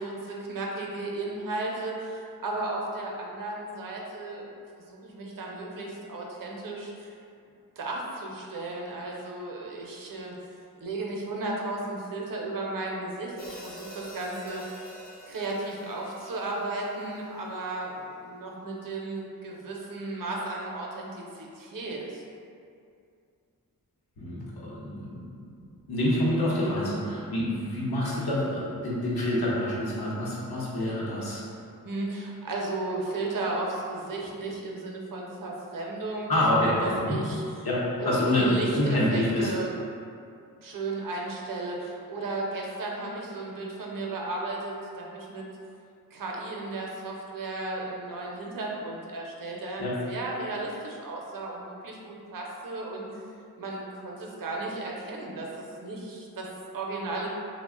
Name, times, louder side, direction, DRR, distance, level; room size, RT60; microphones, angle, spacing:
voice 1, 0.0-4.5 4.7-7.1 7.8-10.3 10.8-14.6 15.3-22.2 31.8-37.4 38.0-39.8 40.6-45.4 46.1-53.2 53.6-57.3, right 2 dB, 60° right, -2 dB, 0.6 m, -34 dB
Hi-hat, 13.4-17.6, left 1 dB, 25° left, 0.5 m, -46 dB
voice 2, 24.2-25.6 25.9-31.4 36.3-37.2 37.6-39.5 49.8-50.0, left 1 dB, 85° left, -6 dB, 0.8 m, -27 dB
2.4 x 2.1 x 3.6 m, 2.4 s
wide cardioid pair, 65°, 37 cm